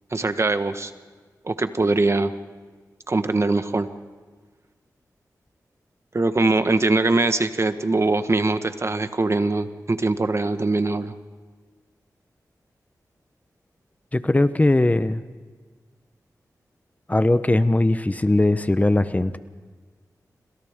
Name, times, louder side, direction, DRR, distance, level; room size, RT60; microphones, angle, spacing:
voice 1, 0.1-0.9 1.4-2.3 3.1-3.9 6.1-11.1, right 2 dB, 45° right, 9 dB, 1.4 m, -22 dB
voice 2, 14.1-15.2 17.1-19.4, left 2 dB, 20° left, 12 dB, 0.9 m, -19 dB
27.5 x 26.0 x 3.7 m, 1.5 s
cardioid pair, 50°, 7 cm